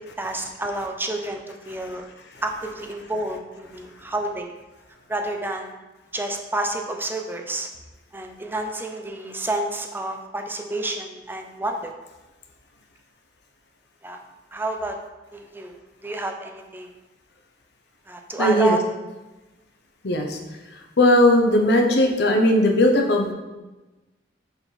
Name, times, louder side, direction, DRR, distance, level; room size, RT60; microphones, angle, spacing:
voice 1, 0.0-2.1 2.4-4.5 5.1-5.8 6.1-7.7 8.1-11.9 14.0-14.2 14.5-15.0 15.3-16.9 18.1-18.8, right 1 dB, 10° right, 4 dB, 0.6 m, -29 dB
voice 2, 18.4-18.8 20.0-20.4 21.0-23.3, left 1 dB, 65° left, 3 dB, 0.8 m, -18 dB
6.9 x 4.0 x 4.0 m, 1.1 s
head